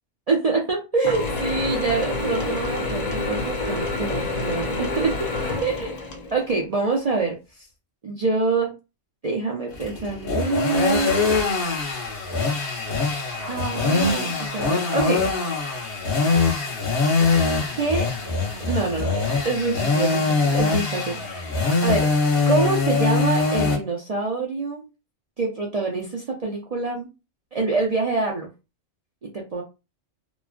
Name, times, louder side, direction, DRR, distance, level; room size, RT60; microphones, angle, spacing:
voice 1, 0.3-5.3 5.6-5.9 6.3-7.6 8.0-8.7 9.2-11.1 13.3-15.2 17.8-18.1 18.6-22.1 22.5-24.8 25.4-27.1 27.5-28.5 29.2-29.6, right 3 dB, 60° right, -2 dB, 0.4 m, -26 dB
Mechanisms / Drill, 1.0-6.5, left 2 dB, 60° left, 0.4 m, -27 dB
sound 1, 9.7-23.8, left 4 dB, 45° left, 1.1 m, -23 dB
2.9 x 2.2 x 2.4 m, 0.28 s
omnidirectional pair, 1.3 m